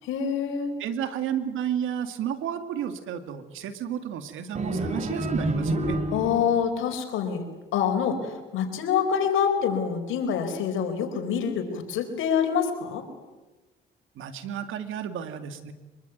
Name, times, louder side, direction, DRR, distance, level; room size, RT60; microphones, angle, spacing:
voice 1, 0.1-0.7 6.1-13.0, left 7 dB, 90° left, 5 dB, 4.7 m, -26 dB
voice 2, 0.8-6.0 14.2-15.7, right 9 dB, 85° right, 10 dB, 2.4 m, -32 dB
sound 1, 4.5-6.6, right 1 dB, 35° right, 4.3 m, -28 dB
25.0 x 22.5 x 9.3 m, 1.2 s
cardioid pair, 90°, 20 cm